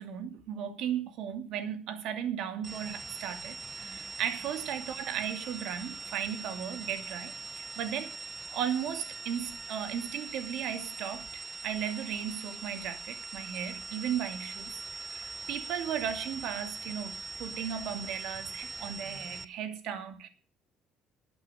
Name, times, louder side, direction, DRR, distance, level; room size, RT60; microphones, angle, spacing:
voice 1, 0.0-8.2 8.5-20.3, right 9 dB, 75° right, 2.5 m, -36 dB
sound 1, 2.6-19.4, right 4 dB, 30° right, 0.9 m, -42 dB
12.5 x 8.9 x 9.8 m
cardioid pair, 95°, 0 cm